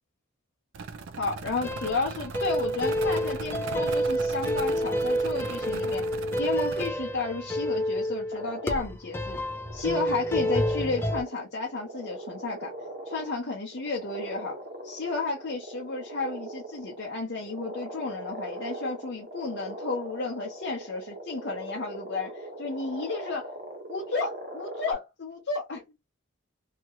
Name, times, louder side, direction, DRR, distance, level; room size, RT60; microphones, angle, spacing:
sound 1, 0.7-6.9, right 4 dB, 65° right, 0.3 m, -39 dB
voice 1, 1.2-6.0 6.4-9.4 9.7-12.7 13.1-14.6 14.8-23.5 23.9-25.8, left 3 dB, 55° left, 0.8 m, -32 dB
sound 2, 1.6-11.2, equal, 10° left, 0.4 m, -29 dB
sound 3, 8.3-8.9 9.5-13.4 13.7-24.9, right 1 dB, 50° right, 0.9 m, -40 dB
2.9 x 2.4 x 2.9 m
head